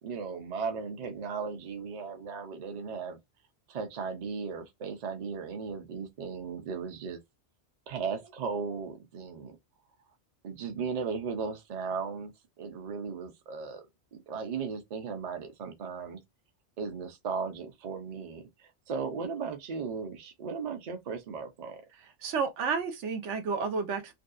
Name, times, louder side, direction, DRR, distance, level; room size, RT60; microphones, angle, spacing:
voice 1, 0.0-3.2 3.7-7.2 7.9-9.6 10.4-12.3 12.6-13.8 14.1-16.2 16.8-21.8, right 5 dB, 45° right, 0.6 m, -36 dB
voice 2, 22.2-24.1, right 5 dB, 90° right, 1.0 m, -31 dB
2.6 x 2.3 x 2.3 m
omnidirectional pair, 1.2 m